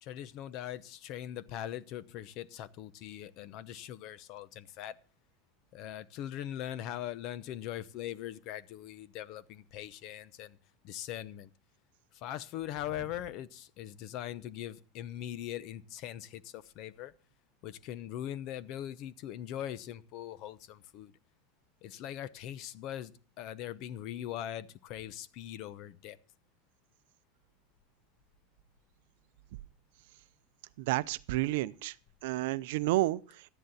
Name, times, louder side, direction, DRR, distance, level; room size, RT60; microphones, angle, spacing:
voice 1, 0.0-5.0 5.7-10.6 10.8-11.5 12.1-17.1 17.6-21.1 21.8-26.2, left 12 dB, 55° left, 0.8 m, -41 dB
voice 2, 30.8-31.9 32.2-33.2, right 18 dB, 70° right, 0.6 m, -30 dB
13.0 x 10.5 x 4.1 m
supercardioid pair, 110°, 0 cm